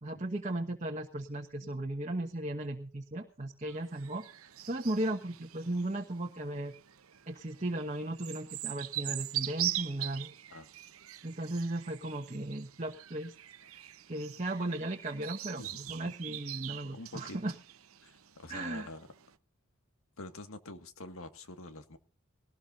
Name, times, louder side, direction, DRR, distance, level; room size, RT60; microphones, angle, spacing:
voice 1, 0.0-6.7 7.3-10.3 11.2-13.3 13.7-17.5 18.5-18.9, right 1 dB, 35° right, 2 dB, 1.2 m, -36 dB
sound 1, 3.7-19.3, right 13 dB, 85° right, 0.9 m, -42 dB
voice 2, 15.6-16.0 16.9-17.4 18.0-19.1 20.2-22.0, left 2 dB, 80° left, 8 dB, 1.8 m, -46 dB
20.0 x 18.5 x 2.6 m, 0.35 s
head